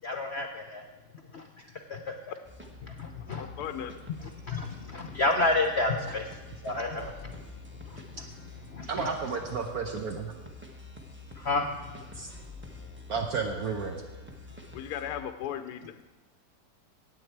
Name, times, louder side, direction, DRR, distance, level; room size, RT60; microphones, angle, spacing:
voice 1, 0.0-0.8 1.3-1.4 1.9-2.1 2.8-3.5 4.2-6.4 6.6-7.4 7.9-8.2 8.7-9.1 11.4-11.7, left 2 dB, 55° left, 5 dB, 0.8 m, -30 dB
sound 1, 2.4-15.2, left 2 dB, 10° right, 1.1 m, -47 dB
voice 2, 3.4-4.0 14.7-16.0, left 9 dB, 75° left, 9 dB, 1.1 m, -36 dB
voice 3, 8.9-10.3 12.1-12.3 13.1-14.0, right 5 dB, 65° right, 3 dB, 1.3 m, -32 dB
16.0 x 9.2 x 4.6 m, 1.2 s
omnidirectional pair, 1.8 m